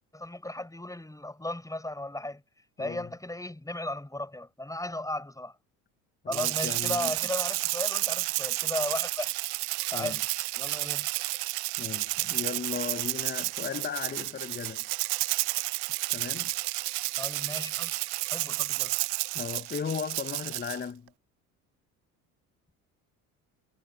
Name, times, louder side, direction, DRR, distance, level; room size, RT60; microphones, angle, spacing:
voice 1, 0.1-2.4 2.8-5.5 6.3-9.3 9.9-10.2 10.6-11.1 17.2-17.9 18.3-19.0, left 1 dB, 10° left, 6.0 m, -35 dB
voice 2, 2.8-3.1 6.2-7.1 9.9-10.2 11.8-14.9 16.1-16.5 19.3-21.1, left 6 dB, 25° left, 1.1 m, -36 dB
Rattle (instrument), 6.3-20.8, right 25 dB, 60° right, 0.6 m, -31 dB
hypercardioid pair, 65°, 43 cm